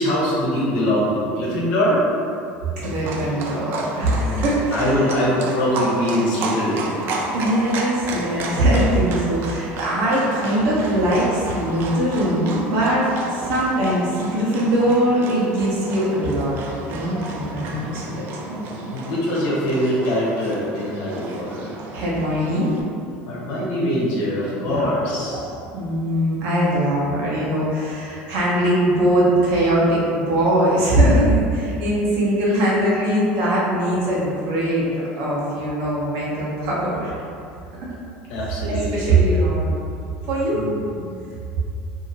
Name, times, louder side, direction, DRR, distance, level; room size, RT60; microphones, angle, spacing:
voice 1, 0.0-2.0 4.0-6.9 10.4-10.5 18.6-21.7 23.3-25.4 38.3-39.2 40.5-41.0, equal, 70° left, -6 dB, 1.0 m, -23 dB
Livestock farm animals working animals, 2.8-22.8, right 2 dB, 50° right, 0.4 m, -32 dB
voice 2, 2.8-5.0 7.3-16.6 16.9-18.9 21.9-22.7 24.6-24.8 25.7-37.1 37.8-37.9 38.7-39.7 40.3-40.6, right 1 dB, 70° right, -7 dB, 1.0 m, -21 dB
2.8 x 2.7 x 2.8 m, 2.5 s
supercardioid pair, 120°, 5 cm